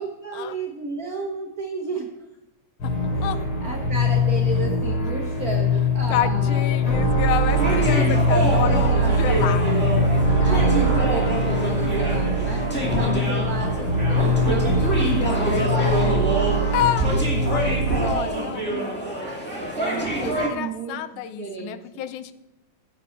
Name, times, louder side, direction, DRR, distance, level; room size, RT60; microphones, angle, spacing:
voice 1, 0.0-2.1 3.1-6.9 7.9-9.6 10.4-15.7 17.0-18.9 19.7-22.0, right 4 dB, 80° right, 1 dB, 0.8 m, -33 dB
sound 1, 2.8-18.1, equal, 45° left, 3.4 m, -22 dB
voice 2, 6.1-9.8 15.2-16.2 16.7-17.1 17.5-18.7 20.0-22.3, left 11 dB, 80° left, 12 dB, 2.1 m, -29 dB
sound 2, 7.5-20.5, right 1 dB, 5° left, 1.8 m, -27 dB
15.5 x 6.9 x 4.5 m, 0.93 s
omnidirectional pair, 3.5 m